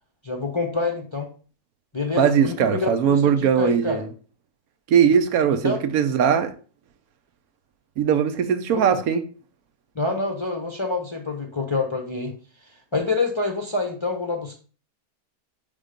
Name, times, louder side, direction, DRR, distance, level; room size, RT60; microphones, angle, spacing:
voice 1, 0.2-1.3 1.9-4.0 5.6-5.8 8.7-8.8 9.9-12.3 12.9-14.5, left 3 dB, 30° left, 0.6 m, -26 dB
voice 2, 2.2-4.1 4.9-6.5 8.0-9.2, right 8 dB, 80° right, 1.2 m, -20 dB
5.3 x 3.6 x 5.1 m
omnidirectional pair, 1.5 m